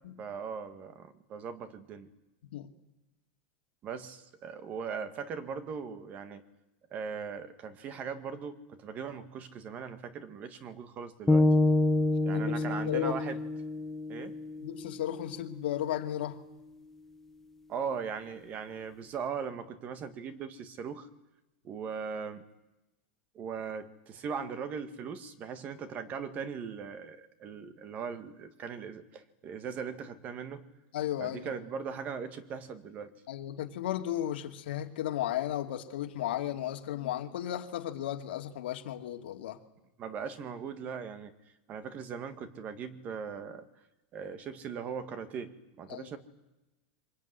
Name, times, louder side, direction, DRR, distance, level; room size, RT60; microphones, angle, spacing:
voice 1, 0.2-2.1 3.8-6.4 6.9-11.5 12.2-13.4 14.1-14.4 17.7-21.1 21.6-22.4 23.4-30.7 31.2-33.1 40.0-41.3 41.7-43.7 44.1-46.2, right 6 dB, 30° right, 11 dB, 1.8 m, -39 dB
sound 1, 11.3-15.4, left 2 dB, 5° left, 1.3 m, -28 dB
voice 2, 12.3-13.2 14.6-16.4 30.9-31.5 33.3-39.6 45.9-46.1, left 12 dB, 85° left, 4 dB, 2.6 m, -34 dB
24.5 x 21.5 x 9.7 m, 0.98 s
supercardioid pair, 160°, 6 cm